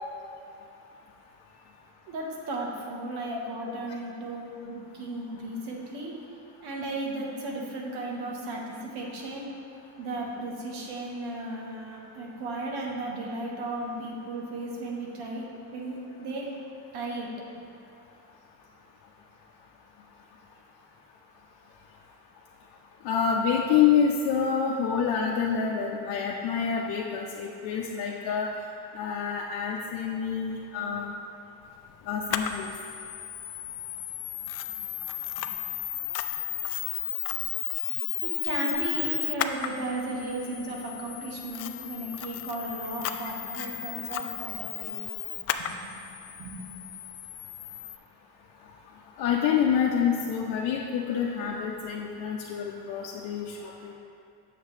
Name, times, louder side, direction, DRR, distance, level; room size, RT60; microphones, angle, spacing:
voice 1, 2.1-6.1 6.6-9.5 10.0-15.4 15.7-16.5 16.9-17.3 38.2-45.0 45.6-45.9 46.4-46.6, right 2 dB, 80° right, -2 dB, 1.4 m, -35 dB
voice 2, 23.0-28.5 28.9-31.1 32.1-32.7 43.2-43.3 49.2-53.9, left 7 dB, 70° left, -2 dB, 0.7 m, -27 dB
Camera, 32.3-48.0, left 11 dB, 40° left, 0.4 m, -34 dB
7.2 x 6.6 x 3.3 m, 2.5 s
supercardioid pair, 90°, 39 cm